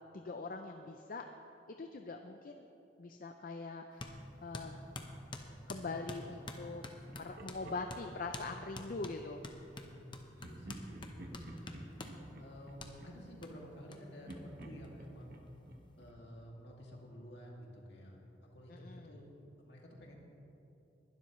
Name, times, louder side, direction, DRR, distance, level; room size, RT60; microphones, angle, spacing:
voice 1, 0.1-1.2 1.7-2.7 3.0-4.8 5.7-6.8 7.1-9.4 18.7-19.1, left 3 dB, 50° left, 5 dB, 0.5 m, -43 dB
sound 1, 4.0-4.2 4.5-7.6 7.9-8.0 8.3-8.5 8.7-12.2 12.8-12.9 13.4-13.5 13.9-14.0 14.3-14.4 14.6-15.4, left 2 dB, 25° left, 0.9 m, -47 dB
voice 2, 5.8-6.2 9.7-10.0 10.4-11.8 12.4-15.4 16.0-20.2, equal, 65° left, -2 dB, 2.4 m, -52 dB
Laughter, 7.1-9.2 10.4-13.9 14.3-17.0, right 1 dB, 55° right, 1.2 m, -52 dB
21.0 x 12.0 x 3.2 m, 2.9 s
head